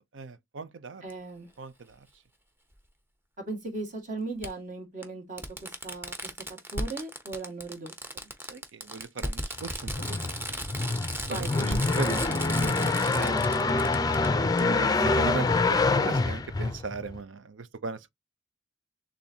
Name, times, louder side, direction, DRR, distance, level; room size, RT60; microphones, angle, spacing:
voice 1, 0.1-1.0 1.6-2.0 8.5-10.5 11.3-11.5 12.0-13.9 14.4-18.1, right 4 dB, 85° right, 0.6 m, -38 dB
voice 2, 1.0-1.5 3.4-6.3 6.7-8.3 11.3-11.8, right 2 dB, 45° right, 1.9 m, -38 dB
Fireworks, 1.1-1.2 2.7-2.8 4.4-4.5 5.0-5.1 5.4-14.3 14.6-14.7, equal, 10° right, 0.8 m, -36 dB
sound 1, 9.6-17.2, left 3 dB, 20° left, 0.4 m, -26 dB
7.0 x 2.6 x 2.7 m
head